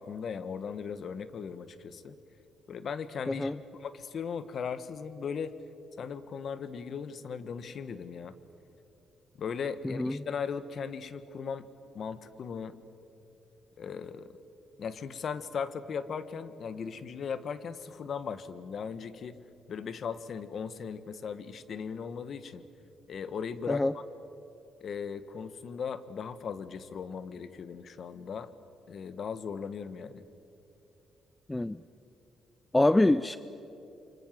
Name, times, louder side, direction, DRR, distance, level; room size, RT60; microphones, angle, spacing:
voice 1, 0.0-2.2 2.7-5.5 6.0-8.3 9.4-11.6 11.9-12.8 13.8-14.4 14.8-19.4 19.7-22.6 23.1-23.9 24.8-28.5 28.9-30.2, left 6 dB, 55° left, 13 dB, 1.4 m, -38 dB
voice 2, 9.8-10.2 23.7-23.9 31.5-31.8 32.7-33.4, left 2 dB, 10° left, 15 dB, 0.5 m, -25 dB
28.5 x 25.0 x 7.5 m, 2.9 s
cardioid pair, 90°, 0 cm